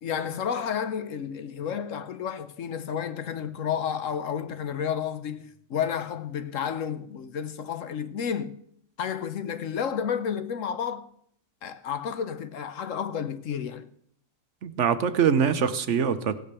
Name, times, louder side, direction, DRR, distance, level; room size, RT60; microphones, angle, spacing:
voice 1, 0.0-8.5 9.0-11.1 11.6-13.9, left 8 dB, 75° left, 1.3 m, -31 dB
voice 2, 14.6-16.4, right 7 dB, 65° right, 1.2 m, -23 dB
16.5 x 8.6 x 6.8 m
omnidirectional pair, 1.4 m